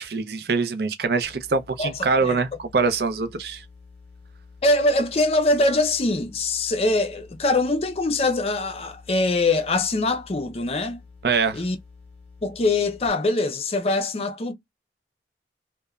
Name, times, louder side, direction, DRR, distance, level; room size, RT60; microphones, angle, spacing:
voice 1, 0.0-3.6 11.2-11.6, right 4 dB, 60° right, 0.5 m, -24 dB
sound 1, 1.2-13.1, left 4 dB, 5° left, 0.9 m, -49 dB
voice 2, 4.6-11.0 11.5-11.8 12.4-14.5, left 2 dB, 35° left, 0.4 m, -23 dB
2.9 x 2.1 x 2.3 m
head